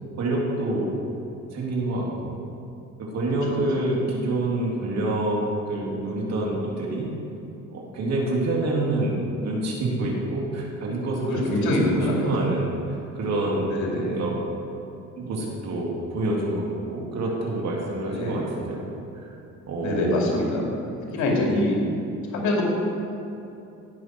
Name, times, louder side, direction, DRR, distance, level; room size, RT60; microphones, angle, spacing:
voice 1, 0.2-1.0 1.5-2.4 3.0-7.1 7.7-14.4 15.2-18.8 19.1-19.3 19.7-20.2 21.2-21.3, right 2 dB, 60° right, -3 dB, 2.9 m, -27 dB
voice 2, 11.3-12.3 13.7-14.2 18.1-18.4 19.8-20.7 21.1-21.8 22.3-22.6, left 1 dB, 75° left, -2 dB, 2.6 m, -24 dB
17.5 x 6.1 x 4.7 m, 2.9 s
cardioid pair, 90°, 30 cm